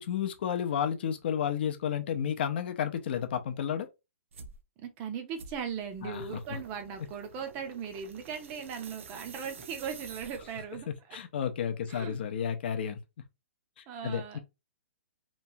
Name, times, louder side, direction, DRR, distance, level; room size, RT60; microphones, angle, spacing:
voice 1, 0.0-3.9 6.0-6.4 10.9-13.0 14.0-14.4, left 8 dB, 50° left, 0.5 m, -32 dB
sound 1, 4.3-4.6 5.4-10.8, right 5 dB, 70° right, 0.6 m, -49 dB
voice 2, 4.8-11.2 11.9-12.2 13.9-14.4, right 7 dB, 25° right, 0.5 m, -38 dB
3.0 x 2.3 x 2.7 m
hypercardioid pair, 165°, 7 cm